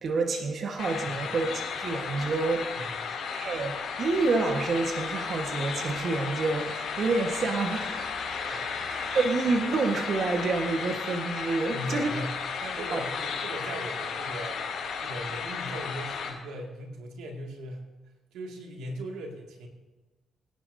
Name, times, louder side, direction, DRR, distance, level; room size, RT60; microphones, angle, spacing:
voice 1, 0.0-2.7 3.3-12.1 12.9-13.0, right 3 dB, 55° right, 2 dB, 1.4 m, -28 dB
sound 1, 0.8-16.3, left 6 dB, 70° left, 5.5 m, -34 dB
voice 2, 2.8-3.1 8.5-8.8 11.7-14.7 15.0-17.9 18.3-19.7, right 1 dB, 90° right, 1 dB, 2.2 m, -39 dB
24.0 x 10.5 x 2.8 m, 1.2 s
cardioid pair, 90°, 0 cm